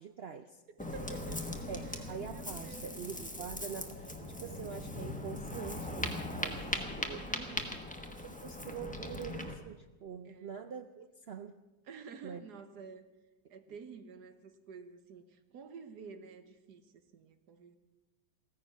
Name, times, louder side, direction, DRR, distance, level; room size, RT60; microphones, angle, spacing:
voice 1, 0.0-0.6 1.7-7.3 8.2-11.6 12.2-12.4, right 7 dB, 85° right, 9 dB, 0.5 m, -45 dB
voice 2, 0.7-1.4 1.8-2.9 7.3-7.9 10.2-10.5 11.8-13.0 13.5-17.8, right 5 dB, 70° right, 9 dB, 1.7 m, -50 dB
Ocean, 0.8-9.6, left 1 dB, 5° left, 1.2 m, -40 dB
16.0 x 14.5 x 6.0 m, 1.1 s
omnidirectional pair, 1.9 m